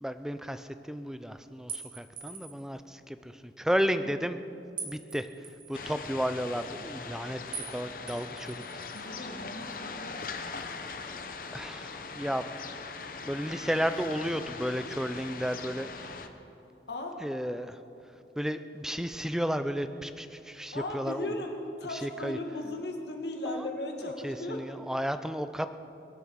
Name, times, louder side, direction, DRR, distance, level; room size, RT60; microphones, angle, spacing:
voice 1, 0.0-4.4 4.8-5.3 5.7-7.4 7.7-8.6 9.1-9.3 11.5-12.4 13.3-16.1 17.2-17.8 18.4-21.3 21.9-22.4 23.5-23.7 24.2-25.7, equal, 5° right, 10 dB, 0.5 m, -33 dB
sound 1, 1.7-2.7 4.8-5.8 7.5-7.8 8.1-9.0, right 5 dB, 30° right, 1.6 m, -42 dB
sound 2, 5.7-16.3, left 4 dB, 50° left, 0.9 m, -41 dB
voice 2, 8.9-10.2 16.9-17.2 20.7-24.6, left 1 dB, 75° left, 3 dB, 1.9 m, -37 dB
23.0 x 8.9 x 6.4 m, 2.8 s
head